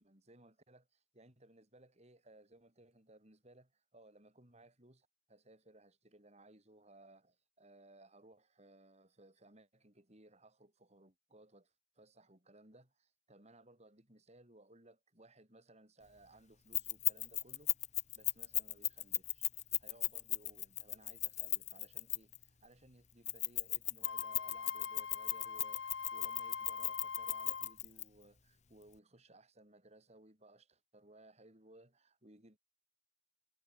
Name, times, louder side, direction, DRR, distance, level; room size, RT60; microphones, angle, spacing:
voice 1, 0.0-17.8 18.1-19.5 19.8-32.6, right 1 dB, 35° right, 6.3 m, -62 dB
Keys jangling, 16.7-22.4 23.3-28.0, left 14 dB, 40° left, 1.1 m, -35 dB
Wind instrument woodwind instrument, 24.0-27.8, left 6 dB, 80° left, 0.9 m, -43 dB
head